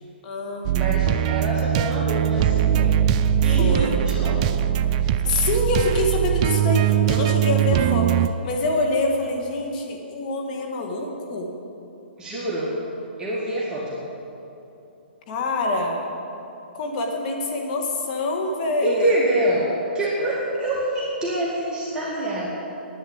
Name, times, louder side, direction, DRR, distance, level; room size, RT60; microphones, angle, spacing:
voice 1, 0.2-0.8 3.6-4.0 5.3-11.5 15.3-16.1 16.7-19.1, left 2 dB, 45° left, 2 dB, 1.8 m, -25 dB
sound 1, 0.6-8.3, right 10 dB, 35° right, 0.5 m, -21 dB
voice 2, 0.7-4.4 12.2-12.8 13.2-14.0 18.8-22.5, right 1 dB, 15° right, -7 dB, 2.1 m, -26 dB
10.0 x 9.6 x 8.6 m, 2.9 s
hypercardioid pair, 135°, 6 cm